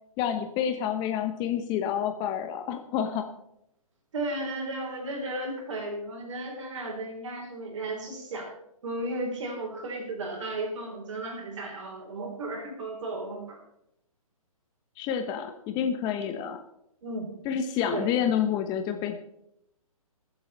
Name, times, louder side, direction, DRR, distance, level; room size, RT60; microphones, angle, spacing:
voice 1, 0.2-3.3 15.0-16.6 17.4-19.1, left 9 dB, 20° left, 6 dB, 0.9 m, -28 dB
voice 2, 4.1-8.5 8.8-13.6 17.0-17.3 17.9-18.1, right 2 dB, 55° right, 1 dB, 4.0 m, -34 dB
22.5 x 7.9 x 4.3 m, 0.78 s
figure-of-eight pair, 135°, 19 cm